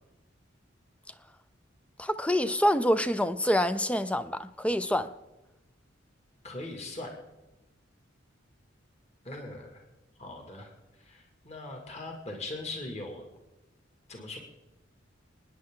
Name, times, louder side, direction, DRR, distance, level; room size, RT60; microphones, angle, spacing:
voice 1, 2.0-5.1, equal, 5° left, 0.5 m, -26 dB
voice 2, 6.4-7.2 9.2-9.8 10.2-10.7 11.0-13.2 14.1-14.4, left 2 dB, 35° left, 2.4 m, -40 dB
28.5 x 9.8 x 3.8 m
head